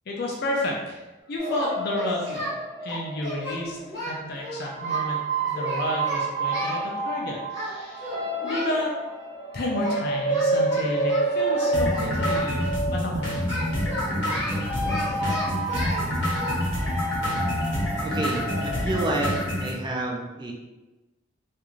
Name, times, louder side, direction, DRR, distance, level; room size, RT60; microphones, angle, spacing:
voice 1, 0.1-1.0 1.3-2.5 2.8-5.2 5.5-9.0 9.5-13.2 13.6-13.9, left 1 dB, 55° left, -2 dB, 0.4 m, -31 dB
Singing, 1.4-2.5 2.9-5.0 5.5-6.8 7.5-7.8 8.0-8.8 9.8-10.0 10.3-12.5 13.5-16.0 16.4-16.5, equal, 20° left, 1.1 m, -33 dB
sound 1, 1.4-3.9 4.7-19.3, right 2 dB, 85° right, 1.0 m, -29 dB
sound 2, 11.7-19.7, left 1 dB, 80° left, 0.9 m, -28 dB
voice 2, 18.0-19.3 19.6-20.5, right 2 dB, 25° right, 0 dB, 0.3 m, -29 dB
2.4 x 2.4 x 2.9 m, 1.1 s
head